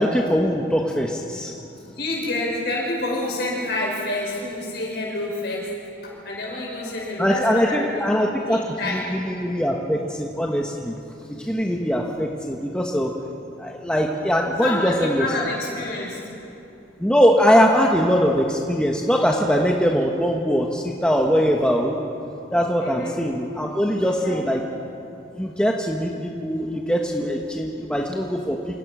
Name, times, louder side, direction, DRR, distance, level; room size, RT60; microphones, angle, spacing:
voice 1, 0.0-1.5 7.2-8.6 8.9-10.9 11.5-13.1 13.6-15.2 17.0-21.9 22.5-24.6 25.4-26.1 26.4-28.6, equal, 5° left, 0 dB, 1.2 m, -21 dB
voice 2, 1.8-5.8 6.0-8.0 8.3-9.0 14.4-16.2 22.8-23.2 24.0-24.6, left 2 dB, 55° left, -3 dB, 6.8 m, -28 dB
28.0 x 17.5 x 6.2 m, 2.7 s
head